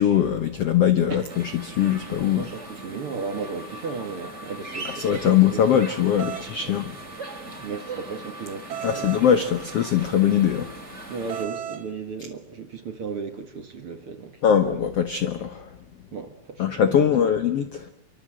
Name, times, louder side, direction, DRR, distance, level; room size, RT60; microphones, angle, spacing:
voice 1, 0.0-1.2 1.6-2.5 4.8-6.9 8.8-10.7 14.4-15.7 16.6-17.9, left 9 dB, 85° left, 1.3 m, -21 dB
sound 1, 1.3-11.4, right 2 dB, 20° right, 3.3 m, -39 dB
voice 2, 2.3-5.6 6.6-6.7 7.6-9.1 11.1-14.4 16.1-17.4, right 5 dB, 45° right, 2.1 m, -35 dB
sound 2, 6.2-6.5 8.7-9.3 11.3-11.8, right 10 dB, 65° right, 3.2 m, -33 dB
26.5 x 24.0 x 7.8 m
omnidirectional pair, 4.5 m